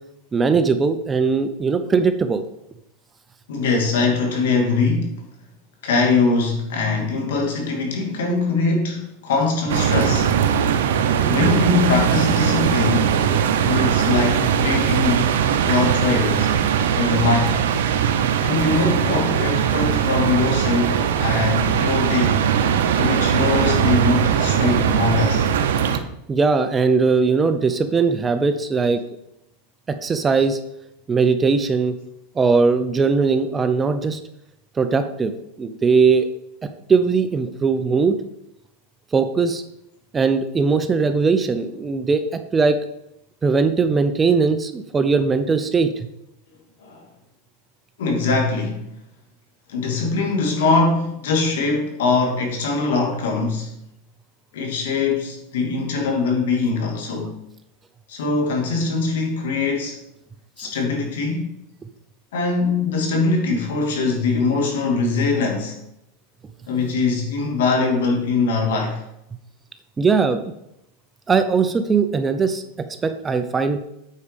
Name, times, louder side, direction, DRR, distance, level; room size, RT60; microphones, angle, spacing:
voice 1, 0.3-2.4 26.3-29.0 29.9-30.6 31.1-31.9 32.4-34.2 34.8-35.3 35.6-36.3 36.6-38.2 39.1-39.6 40.1-42.8 43.4-46.1 70.0-70.4 71.3-73.8, right 4 dB, 15° right, 0.6 m, -19 dB
voice 2, 3.5-5.2 5.8-10.3 11.2-13.1 13.6-15.3 15.6-16.5 17.0-17.6 18.4-22.4 23.0-25.5 30.4-30.5 46.8-47.0 48.0-48.8 49.7-53.7 54.5-57.4 58.1-60.0 60.6-61.5 62.3-65.8 66.7-69.0, left 3 dB, 85° left, 2.4 m, -22 dB
sound 1, 9.7-26.0, right 8 dB, 85° right, 0.7 m, -20 dB
8.4 x 4.7 x 5.2 m
supercardioid pair, 145°, 0 cm